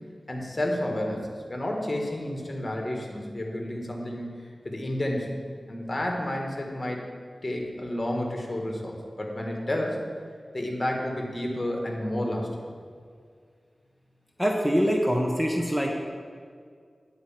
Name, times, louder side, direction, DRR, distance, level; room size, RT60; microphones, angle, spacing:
voice 1, 0.3-1.2 1.5-4.3 4.6-5.3 5.7-7.1 7.4-10.0 10.5-12.5, left 1 dB, 35° left, 0 dB, 1.6 m, -30 dB
voice 2, 14.4-15.9, equal, 5° right, 1 dB, 0.8 m, -24 dB
9.5 x 4.4 x 7.3 m, 2.1 s
wide cardioid pair, 75°, 0 cm